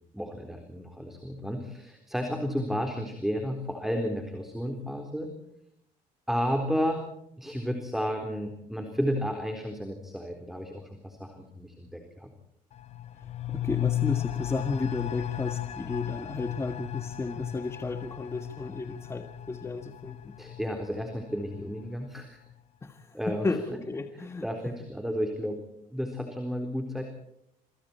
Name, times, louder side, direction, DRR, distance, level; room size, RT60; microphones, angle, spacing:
voice 1, 0.1-5.3 6.3-7.0 7.4-12.3 20.4-22.4 23.1-23.5 24.2-27.1, equal, ahead, 4 dB, 3.9 m, -32 dB
sound 1, 12.7-22.1 22.4-22.5, left 12 dB, 45° left, 1.5 m, -35 dB
voice 2, 13.5-20.3 22.8-24.5, left 3 dB, 15° left, 7 dB, 1.6 m, -33 dB
27.5 x 26.0 x 4.5 m, 0.77 s
cardioid pair, 140°, 15 cm